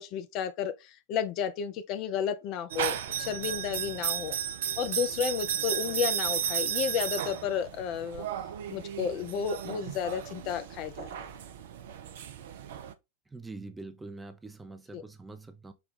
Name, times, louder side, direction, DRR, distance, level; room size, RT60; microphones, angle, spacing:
voice 1, 0.0-4.4 4.8-8.3 8.7-11.1 14.9-15.0, left 7 dB, 40° left, 0.5 m, -32 dB
sound 1, 2.7-12.9, right 9 dB, 55° right, 0.5 m, -34 dB
voice 2, 13.3-15.7, right 3 dB, 10° right, 0.5 m, -44 dB
4.9 x 2.3 x 3.8 m
figure-of-eight pair, 90°, 0 cm